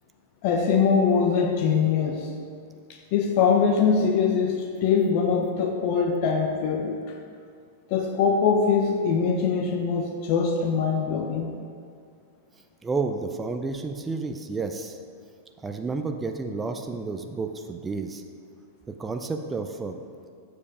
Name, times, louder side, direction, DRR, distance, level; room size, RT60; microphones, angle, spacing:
voice 1, 0.4-2.3 3.1-7.0 7.9-11.5, left 6 dB, 55° left, 2 dB, 0.7 m, -22 dB
voice 2, 12.8-15.0 15.6-18.2 18.9-20.1, right 4 dB, 15° right, 5 dB, 0.4 m, -31 dB
7.3 x 4.8 x 4.9 m, 2.2 s
hypercardioid pair, 125°, 0 cm